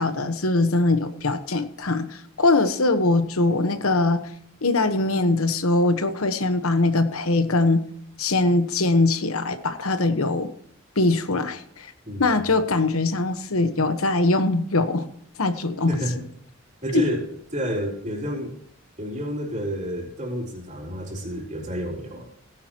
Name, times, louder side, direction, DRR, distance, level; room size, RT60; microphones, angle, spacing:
voice 1, 0.0-4.2 4.6-7.8 8.2-10.5 11.0-11.9 12.2-15.1 15.4-16.0 16.9-17.1, left 2 dB, 80° left, 10 dB, 1.2 m, -22 dB
voice 2, 15.9-16.2 16.8-17.3 17.5-18.5 19.0-22.3, equal, 35° right, -1 dB, 3.7 m, -29 dB
17.0 x 10.5 x 3.0 m, 0.69 s
head